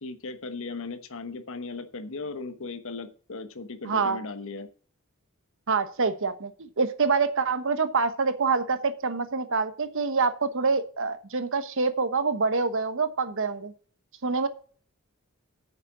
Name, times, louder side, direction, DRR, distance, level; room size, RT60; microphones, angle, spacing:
voice 1, 0.0-4.7, left 3 dB, 65° left, 10 dB, 1.1 m, -37 dB
voice 2, 3.8-4.2 5.7-13.7 14.2-14.5, right 4 dB, 65° right, 11 dB, 1.1 m, -26 dB
9.2 x 6.6 x 6.2 m, 0.43 s
head